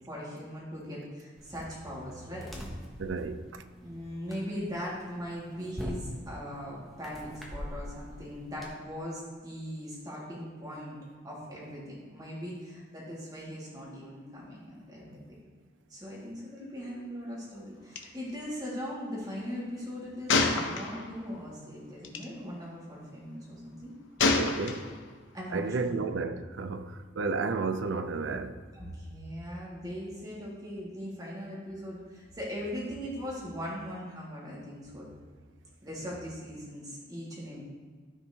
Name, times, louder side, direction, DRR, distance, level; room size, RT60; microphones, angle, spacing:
voice 1, 0.1-2.5 3.8-11.0 11.2-15.4 15.9-23.9 25.3-26.0 28.7-35.0 35.8-37.6, equal, 20° right, 2.1 m, -40 dB
sound 1, 1.4-8.7, equal, ahead, 0.8 m, -44 dB
voice 2, 3.0-3.6 24.3-24.9 25.5-28.6, right 4 dB, 80° right, 0.5 m, -32 dB
Gunshot gunfire, 18.0-18.1 18.3-18.5 20.3-21.3 22.0-22.2 24.2-25.1, left 3 dB, 85° left, 0.7 m, -27 dB
13.0 x 4.5 x 2.9 m
head